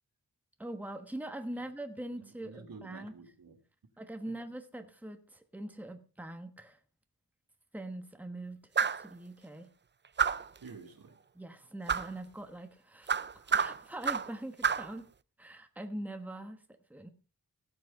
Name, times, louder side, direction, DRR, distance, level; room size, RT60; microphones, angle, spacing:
voice 1, 0.6-3.1 4.0-6.8 7.7-8.7 9.0-9.7 11.3-15.1 15.4-16.6 16.9-17.1, right 1 dB, 5° right, 7 dB, 1.2 m, -43 dB
voice 2, 2.1-3.6 4.2-4.4 10.6-11.2, right 5 dB, 80° right, 5 dB, 2.1 m, -50 dB
sound 1, 8.8-9.1 10.2-10.6 11.9-12.1 13.1-14.3 14.6-14.9, right 6 dB, 30° right, 0.5 m, -29 dB
16.5 x 6.3 x 5.4 m, 0.37 s
wide cardioid pair, 105°, 35 cm